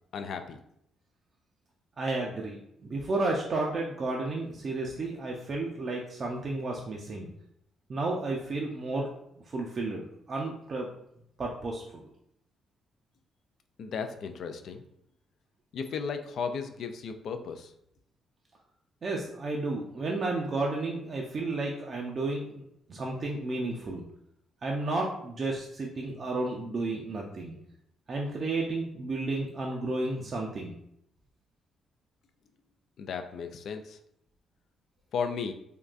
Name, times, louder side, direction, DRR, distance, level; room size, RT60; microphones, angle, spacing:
voice 1, 0.1-0.6 13.8-14.8 15.7-17.7 33.0-34.0 35.1-35.5, left 6 dB, 70° left, 7 dB, 0.3 m, -35 dB
voice 2, 2.0-7.3 7.9-9.1 9.5-10.9 11.4-12.0 19.0-22.6 22.9-24.0 24.6-27.6 28.1-30.7, right 2 dB, 50° right, -1 dB, 0.5 m, -32 dB
3.6 x 2.2 x 2.4 m, 0.75 s
supercardioid pair, 70°, 0 cm